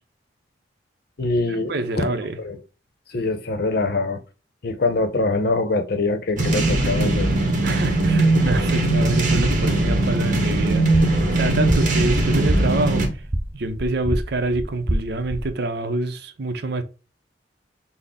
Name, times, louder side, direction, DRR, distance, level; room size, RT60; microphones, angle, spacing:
voice 1, 1.2-2.6 3.1-4.2 4.6-7.3, left 3 dB, 60° left, 0.7 m, -24 dB
voice 2, 1.7-2.4 7.6-13.2 13.5-16.8, right 2 dB, 65° right, 0.7 m, -26 dB
sound 1, 6.4-13.1, right 2 dB, 50° right, 1.1 m, -20 dB
sound 2, 10.9-15.5, right 1 dB, 15° right, 0.4 m, -28 dB
6.0 x 2.1 x 3.6 m
head